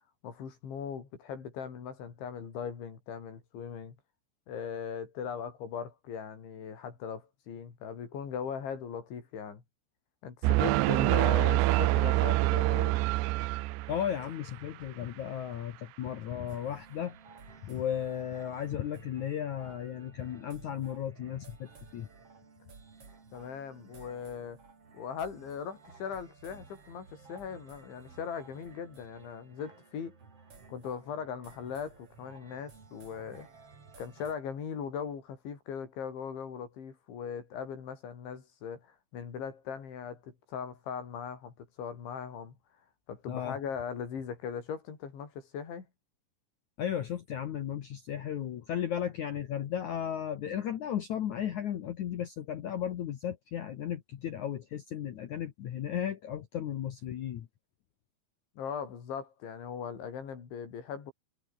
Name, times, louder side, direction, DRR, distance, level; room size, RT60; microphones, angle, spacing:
voice 1, 0.2-4.0 4.5-9.6 10.2-13.0 23.3-24.6 24.9-30.2 30.7-33.5 34.0-42.6 43.1-45.9 58.6-61.1, left 7 dB, 80° left, 7.0 m, -39 dB
sound 1, 10.4-14.2, right 20 dB, 85° right, 2.7 m, -26 dB
voice 2, 13.9-17.2 17.6-22.1 43.3-43.6 46.8-57.5, left 10 dB, 65° left, 1.9 m, -35 dB
sound 2, 16.5-34.3, right 4 dB, 35° right, 4.8 m, -55 dB
omnidirectional pair, 5.2 m